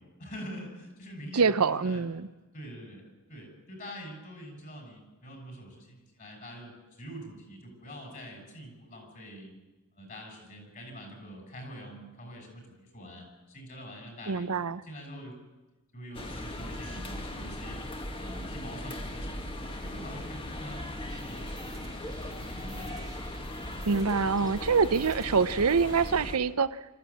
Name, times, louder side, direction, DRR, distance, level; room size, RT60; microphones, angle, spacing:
voice 1, 0.0-2.0 2.5-3.0 3.3-9.5 9.9-14.5 14.8-15.4 15.9-17.8 18.2-19.5 19.8-20.8 21.1-21.8 22.3-23.0, equal, 40° left, 3 dB, 6.6 m, -45 dB
voice 2, 1.3-2.3 14.3-14.8 23.9-26.9, right 5 dB, 80° right, 15 dB, 0.7 m, -25 dB
sound 1, 16.1-26.4, left 1 dB, 25° left, 1.5 m, -38 dB
sound 2, 21.1-26.1, right 4 dB, 15° right, 1.1 m, -53 dB
26.0 x 14.0 x 8.4 m, 1.1 s
head